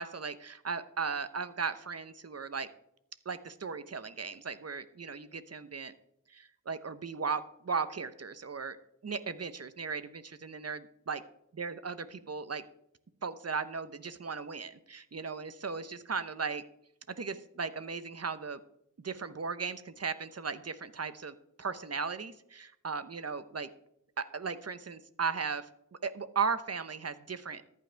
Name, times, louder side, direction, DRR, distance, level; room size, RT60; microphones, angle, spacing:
voice 1, 0.0-2.7 3.3-5.9 6.3-8.8 9.0-11.2 11.6-12.6 13.2-16.6 17.2-18.6 19.0-23.7 24.2-25.6 26.0-27.6, right 5 dB, 50° right, 13 dB, 1.0 m, -36 dB
14.5 x 10.5 x 3.5 m, 0.76 s
wide cardioid pair, 65°, 32 cm